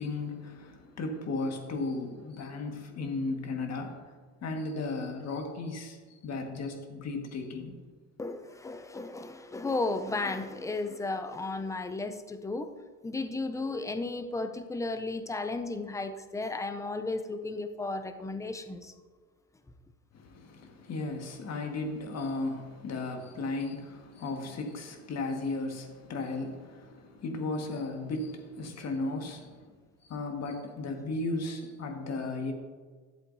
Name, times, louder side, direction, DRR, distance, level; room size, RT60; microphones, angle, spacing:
voice 1, 0.0-4.0 4.4-6.0 6.2-7.8 20.1-29.7 30.1-32.5, left 3 dB, 35° left, 4 dB, 1.6 m, -35 dB
voice 2, 8.2-12.7 13.0-18.9, left 3 dB, 10° left, 8 dB, 0.4 m, -34 dB
12.0 x 7.6 x 2.7 m, 1.5 s
hypercardioid pair, 90°, 44 cm